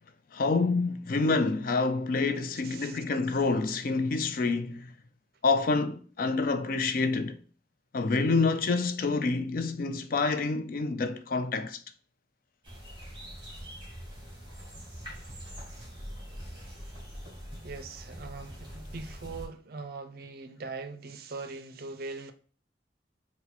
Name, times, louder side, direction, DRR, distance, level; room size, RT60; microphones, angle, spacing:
voice 1, 0.3-4.9 5.4-7.4 7.9-11.8, left 3 dB, 50° left, 0.4 m, -27 dB
voice 2, 2.6-3.0 17.6-22.3, right 3 dB, 55° right, 0.5 m, -41 dB
sound 1, 12.6-19.5, equal, 25° right, 1.9 m, -43 dB
4.1 x 2.2 x 4.1 m
head